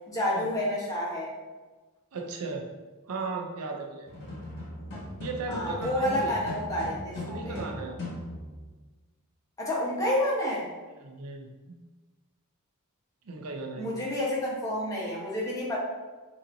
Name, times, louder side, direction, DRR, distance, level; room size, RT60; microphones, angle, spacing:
voice 1, 0.1-1.3 5.5-7.4 9.6-10.6 13.8-15.8, left 1 dB, 15° left, -5 dB, 1.1 m, -29 dB
voice 2, 2.1-2.7 3.1-4.1 5.2-6.4 7.3-8.0 11.0-11.8 13.2-14.0, right 3 dB, 75° right, 3 dB, 0.5 m, -36 dB
sound 1, 4.1-8.7, left 1 dB, 55° left, 1.4 m, -39 dB
5.3 x 2.9 x 2.7 m, 1.3 s
head